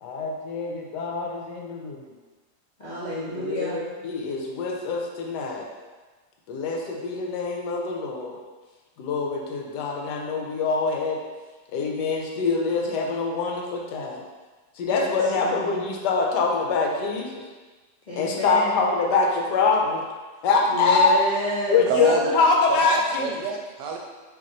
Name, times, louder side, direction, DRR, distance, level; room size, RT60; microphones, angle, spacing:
voice 1, 0.0-2.0 3.3-5.7 6.5-8.4 9.0-11.2 11.7-14.2 14.8-17.4 18.2-20.0 20.4-21.2 21.7-23.3, left 4 dB, 80° left, 1 dB, 1.1 m, -24 dB
voice 2, 2.8-3.8 14.9-15.6 18.1-18.8 20.7-21.8, right 1 dB, 50° left, -11 dB, 0.5 m, -29 dB
voice 3, 21.9-24.0, right 5 dB, 80° right, 1 dB, 1.2 m, -28 dB
3.0 x 2.5 x 4.0 m, 1.3 s
omnidirectional pair, 1.8 m